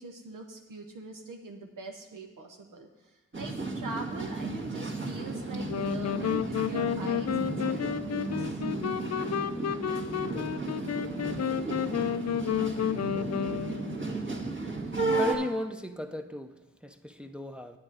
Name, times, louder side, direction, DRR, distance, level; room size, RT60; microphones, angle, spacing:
voice 1, 0.0-8.6, right 3 dB, 75° right, 3 dB, 0.8 m, -43 dB
sound 1, 3.3-15.4, right 3 dB, 40° right, 1.7 m, -34 dB
sound 2, 5.7-14.1, left 9 dB, 55° left, 0.4 m, -31 dB
voice 2, 15.2-17.8, left 1 dB, 5° right, 7 dB, 0.6 m, -35 dB
8.6 x 8.1 x 5.0 m, 1.1 s
cardioid pair, 50°, 32 cm